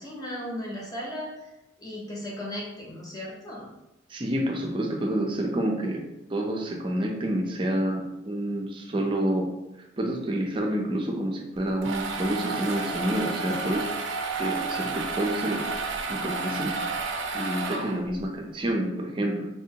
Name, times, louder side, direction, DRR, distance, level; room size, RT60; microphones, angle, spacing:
voice 1, 0.0-1.5 1.8-3.7, left 1 dB, 20° left, -4 dB, 0.8 m, -36 dB
voice 2, 4.1-6.0 6.3-9.5 10.0-13.9 14.4-15.6 16.1-16.8 17.3-19.5, right 1 dB, 25° right, 0 dB, 0.5 m, -28 dB
sound 1, 11.6-18.3, right 4 dB, 85° right, 0.5 m, -31 dB
3.6 x 2.6 x 2.8 m, 0.95 s
head